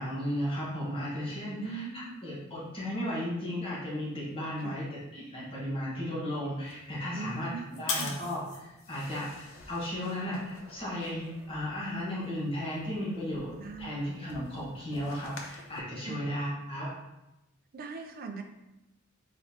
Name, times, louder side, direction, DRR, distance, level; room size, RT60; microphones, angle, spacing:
voice 1, 0.0-7.5 7.8-13.5 13.8-17.0, equal, 25° left, -7 dB, 1.4 m, -35 dB
voice 2, 1.6-2.2 4.6-4.8 7.1-8.2 13.6-14.1 16.1-16.2 17.7-18.4, right 5 dB, 45° right, 4 dB, 0.5 m, -41 dB
sound 1, 6.6-15.8, left 3 dB, 80° left, 0.7 m, -44 dB
4.2 x 4.0 x 2.9 m, 0.93 s
head